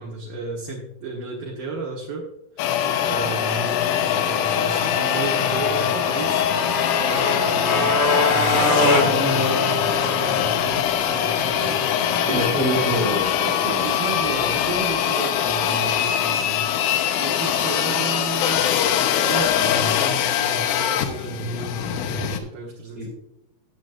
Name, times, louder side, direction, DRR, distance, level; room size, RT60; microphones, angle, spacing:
voice 1, 0.0-2.2 2.6-2.7 3.0-8.0 8.3-11.8 13.6-16.7 17.2-18.7 19.3-23.1, right 3 dB, 60° right, -4 dB, 2.6 m, -33 dB
sound 1, 2.6-22.4, left 9 dB, 80° left, 3.3 m, -23 dB
Motorcycle, 2.6-14.7, left 2 dB, 55° left, 2.4 m, -26 dB
voice 2, 12.3-14.0 22.9-23.1, right 1 dB, 40° right, -3 dB, 1.2 m, -26 dB
14.0 x 7.5 x 2.6 m, 0.82 s
omnidirectional pair, 5.6 m